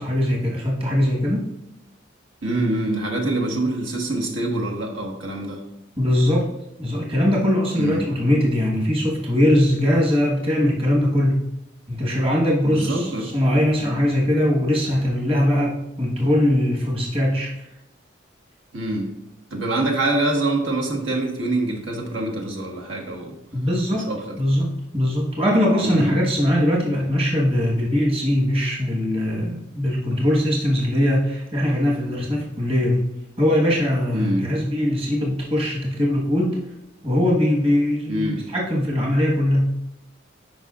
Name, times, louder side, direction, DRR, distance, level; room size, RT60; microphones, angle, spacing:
voice 1, 0.0-1.4 6.0-6.5 6.8-11.4 11.9-17.5 23.5-24.1 24.4-33.1 33.4-36.6 37.0-39.7, left 1 dB, 30° right, -3 dB, 1.3 m, -21 dB
voice 2, 2.4-5.6 7.7-8.0 12.6-13.3 18.7-19.1 19.5-23.3 23.9-24.4 25.8-26.1 34.1-34.5 38.1-38.4, right 2 dB, 85° right, 0 dB, 1.4 m, -25 dB
11.0 x 5.1 x 2.4 m, 0.85 s
head